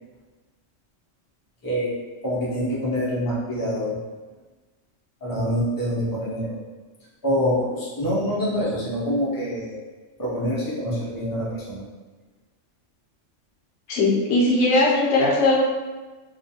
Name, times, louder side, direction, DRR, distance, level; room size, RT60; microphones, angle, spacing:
voice 1, 2.2-4.0 5.2-6.6 7.2-9.7 10.2-11.8, equal, 30° left, -7 dB, 0.4 m, -25 dB
voice 2, 13.9-15.6, left 2 dB, 70° left, -4 dB, 0.9 m, -19 dB
2.4 x 2.2 x 2.7 m, 1.2 s
omnidirectional pair, 1.3 m